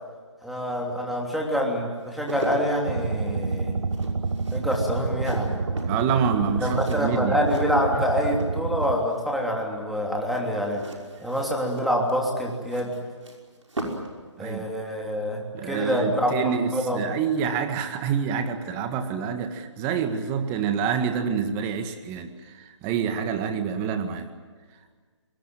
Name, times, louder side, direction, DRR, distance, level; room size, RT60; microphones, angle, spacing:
voice 1, 0.4-3.7 4.5-5.5 6.6-10.9 11.2-12.9 14.4-16.3 16.7-17.0, equal, ahead, -1 dB, 3.1 m, -26 dB
sound 1, 2.0-8.5 8.7-9.4 10.7-14.2 14.4-14.6, right 2 dB, 90° right, 5.8 m, -39 dB
sound 2, 2.8-8.9, right 4 dB, 65° right, 1.6 m, -28 dB
voice 2, 5.9-7.4 7.9-8.0 14.4-14.7 15.5-24.3, right 7 dB, 20° right, 7 dB, 1.9 m, -27 dB
24.5 x 21.5 x 9.3 m, 1.5 s
figure-of-eight pair, 150°, 16 cm